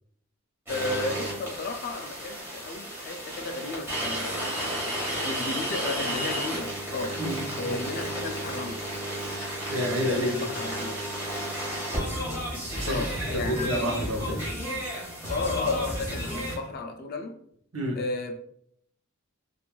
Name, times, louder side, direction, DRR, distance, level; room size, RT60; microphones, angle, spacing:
voice 1, 0.7-4.6 5.2-7.1 7.6-8.8 10.1-11.0 12.9-13.7 15.3-17.3 17.9-18.3, left 3 dB, 45° left, 5 dB, 0.3 m, -33 dB
sound 1, 0.7-16.6, equal, 10° right, 1.0 m, -32 dB
voice 2, 9.7-10.3 12.7-13.0 13.4-14.4 17.7-18.0, equal, 85° right, -1 dB, 0.8 m, -28 dB
3.0 x 2.4 x 2.2 m, 0.68 s
head